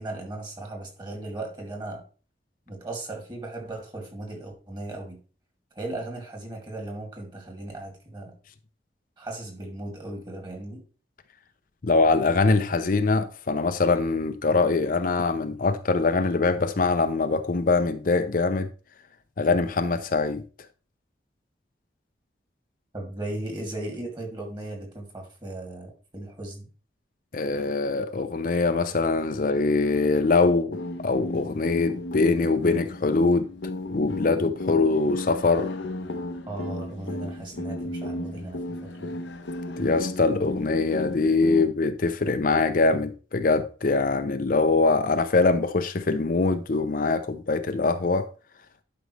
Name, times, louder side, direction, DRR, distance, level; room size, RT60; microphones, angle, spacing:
voice 1, 0.0-2.0 2.7-5.2 5.7-8.3 9.2-10.8 22.9-26.7 36.4-39.2, right 2 dB, 25° right, 2.3 m, -37 dB
voice 2, 11.8-18.7 19.4-20.4 27.3-30.8 31.0-33.5 33.9-35.7 39.8-48.3, left 3 dB, 50° left, 0.6 m, -23 dB
sound 1, 30.7-41.6, left 2 dB, 90° left, 0.9 m, -34 dB
11.5 x 5.3 x 3.2 m
head